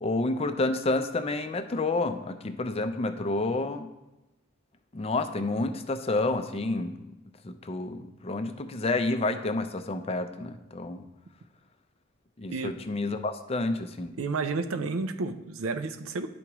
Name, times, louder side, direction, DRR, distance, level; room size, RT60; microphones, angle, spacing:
voice 1, 0.0-3.9 4.9-6.9 7.4-11.1 12.4-14.1, left 2 dB, 30° left, 8 dB, 0.4 m, -29 dB
voice 2, 14.2-16.3, right 3 dB, 90° right, 9 dB, 0.5 m, -31 dB
11.5 x 4.7 x 3.0 m, 0.98 s
head